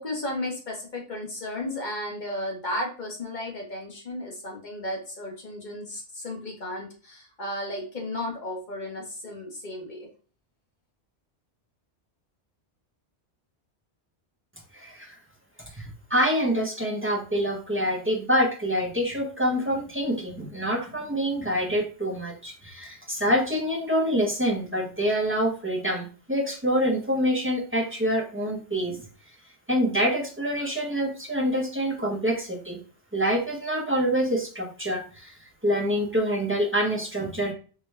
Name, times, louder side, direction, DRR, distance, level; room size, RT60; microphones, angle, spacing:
voice 1, 0.0-10.1, left 1 dB, 45° left, 0 dB, 1.1 m, -34 dB
voice 2, 14.7-15.1 15.7-29.0 29.7-32.8 33.1-37.5, equal, 15° right, 0 dB, 0.5 m, -26 dB
4.5 x 2.2 x 3.1 m, 0.38 s
omnidirectional pair, 1.1 m